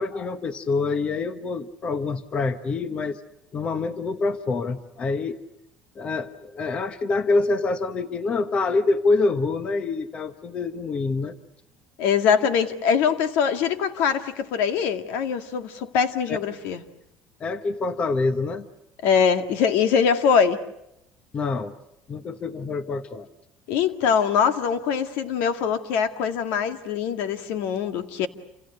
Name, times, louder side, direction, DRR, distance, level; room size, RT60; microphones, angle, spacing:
voice 1, 0.0-3.2 3.5-5.4 5.9-11.4 16.3-16.4 17.4-18.7 21.3-21.8 22.1-23.3, left 3 dB, 30° left, 1.1 m, -26 dB
voice 2, 12.0-16.8 19.0-20.6 23.7-28.3, left 7 dB, 80° left, 2.0 m, -23 dB
28.5 x 28.5 x 6.6 m
cardioid pair, 155°, 4 cm